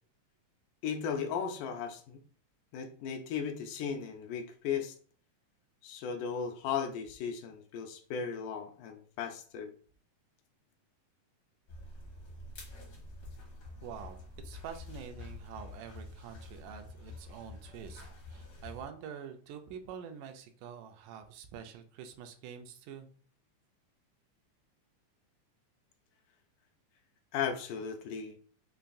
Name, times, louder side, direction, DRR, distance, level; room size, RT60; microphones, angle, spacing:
voice 1, 0.8-2.2 2.7-4.9 5.8-9.7 27.3-28.4, left 7 dB, 85° left, 5 dB, 2.0 m, -36 dB
sound 1, 11.7-18.9, left 2 dB, 60° left, 1.0 m, -48 dB
voice 2, 13.8-14.2 14.4-18.0 18.3-23.1, right 8 dB, 85° right, 6 dB, 2.1 m, -46 dB
5.6 x 2.3 x 2.6 m, 0.44 s
omnidirectional pair, 3.6 m